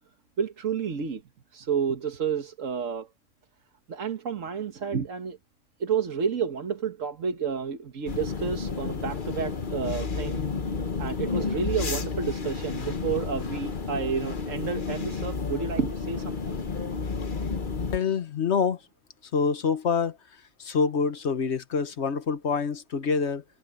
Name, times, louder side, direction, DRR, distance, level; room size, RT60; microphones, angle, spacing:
voice 1, 0.4-1.2 1.5-3.1 3.9-5.4 5.8-10.5 11.0-16.6, right 6 dB, 85° right, 1.7 m, -30 dB
sound 1, 8.1-18.0, left 4 dB, 40° left, 1.3 m, -31 dB
voice 2, 17.9-18.8 19.3-20.2 20.6-23.4, left 5 dB, 60° left, 1.4 m, -26 dB
omnidirectional pair, 1.3 m